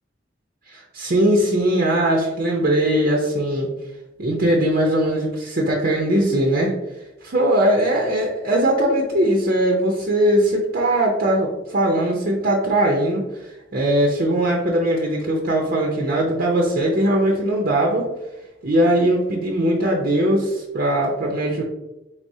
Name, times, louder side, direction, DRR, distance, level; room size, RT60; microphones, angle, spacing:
voice 1, 0.7-3.7 4.2-6.7 7.2-13.2 13.7-18.1 18.6-21.6, right 1 dB, 50° right, -1 dB, 0.6 m, -20 dB
4.7 x 3.5 x 2.7 m, 0.99 s
head